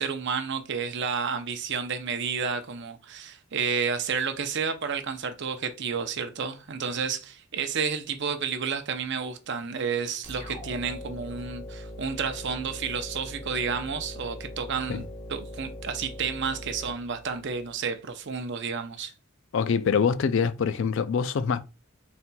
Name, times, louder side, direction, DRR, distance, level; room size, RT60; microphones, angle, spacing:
voice 1, 0.0-19.1, right 6 dB, 55° right, 0.6 m, -31 dB
sound 1, 10.2-17.7, equal, 25° left, 1.1 m, -41 dB
voice 2, 19.5-21.6, left 6 dB, 60° left, 0.3 m, -24 dB
4.2 x 4.1 x 2.2 m
head